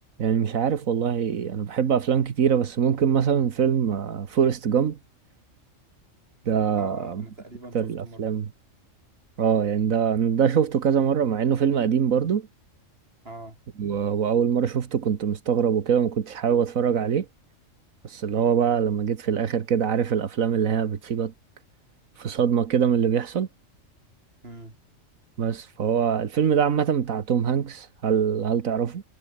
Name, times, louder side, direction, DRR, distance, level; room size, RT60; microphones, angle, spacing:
voice 1, 0.2-5.0 6.5-7.2 7.7-8.5 9.4-12.5 13.8-17.3 18.0-21.3 22.2-23.5 25.4-29.0, right 7 dB, 90° right, 1.7 m, -23 dB
voice 2, 6.8-8.2 13.2-13.6 24.4-24.8, right 2 dB, 45° right, 5.7 m, -41 dB
omnidirectional pair, 1.4 m